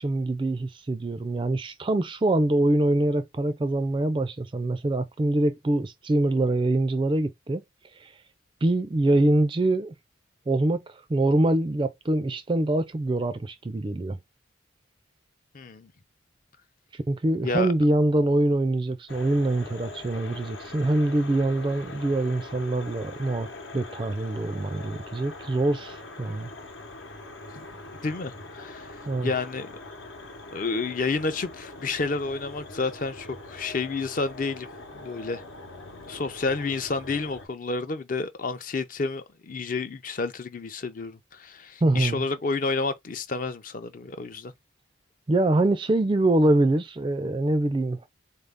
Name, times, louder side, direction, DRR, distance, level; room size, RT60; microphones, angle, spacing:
voice 1, 0.0-7.6 8.0-8.1 8.6-9.9 10.5-14.2 16.9-23.5 23.7-26.5 29.1-29.3 41.8-42.2 45.3-48.1, right 2 dB, 25° right, 0.3 m, -24 dB
voice 2, 15.5-15.9 17.4-17.7 27.5-27.7 28.0-29.0 29.2-29.7 30.5-34.7 34.9-35.4 36.1-44.5, left 4 dB, 40° left, 0.5 m, -30 dB
sound 1, 19.1-37.5, left 2 dB, 75° left, 0.9 m, -42 dB
3.9 x 2.6 x 3.5 m
head